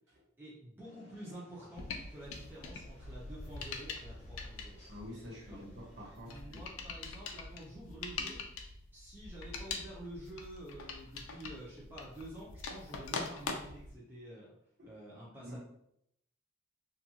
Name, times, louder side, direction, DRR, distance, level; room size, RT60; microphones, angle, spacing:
voice 1, 0.4-4.8 5.5-5.6 6.2-8.5 8.9-14.5 14.8-15.6, right 1 dB, 10° right, -7 dB, 0.5 m, -49 dB
sound 1, 0.8-6.2, left 1 dB, 35° left, 0.7 m, -63 dB
sound 2, 1.8-13.9, left 4 dB, 80° left, 0.4 m, -44 dB
voice 2, 4.9-6.6 15.4-15.6, equal, 60° right, -6 dB, 1.2 m, -47 dB
2.5 x 2.3 x 2.8 m, 0.72 s
head